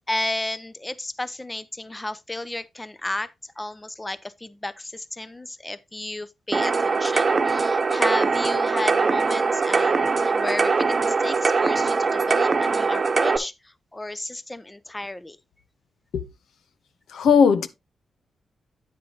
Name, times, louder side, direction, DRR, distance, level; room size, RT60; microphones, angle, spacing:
voice 1, 0.1-3.3 3.6-15.4, left 1 dB, 15° left, 0.6 m, -33 dB
sound 1, 6.5-13.4, right 4 dB, 40° right, 0.9 m, -22 dB
voice 2, 17.1-17.7, left 6 dB, 85° left, 0.8 m, -17 dB
9.3 x 7.5 x 2.8 m
cardioid pair, 90°, 0 cm